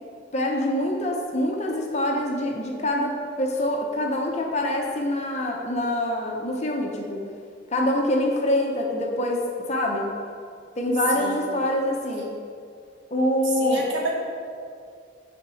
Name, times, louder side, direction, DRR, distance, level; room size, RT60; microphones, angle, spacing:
voice 1, 0.3-7.2 7.7-9.4 9.7-10.1 10.8-12.3 13.1-13.8, left 1 dB, 35° left, 0 dB, 0.9 m, -25 dB
voice 2, 11.1-11.5 13.4-14.1, right 3 dB, 60° right, -2 dB, 1.5 m, -30 dB
8.6 x 4.3 x 6.3 m, 2.4 s
head